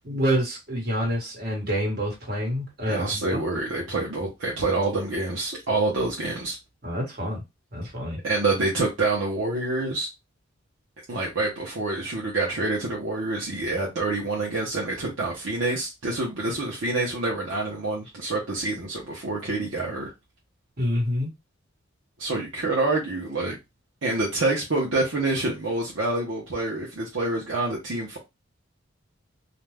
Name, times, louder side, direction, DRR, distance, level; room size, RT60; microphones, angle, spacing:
voice 1, 0.0-3.4 6.8-7.4 7.7-8.2 20.8-21.3, equal, 45° right, 1.3 m, -27 dB
voice 2, 2.9-6.6 8.2-10.1 11.1-20.1 22.2-23.6 24.0-28.2, right 2 dB, 65° right, 0.7 m, -27 dB
2.5 x 2.2 x 3.2 m
head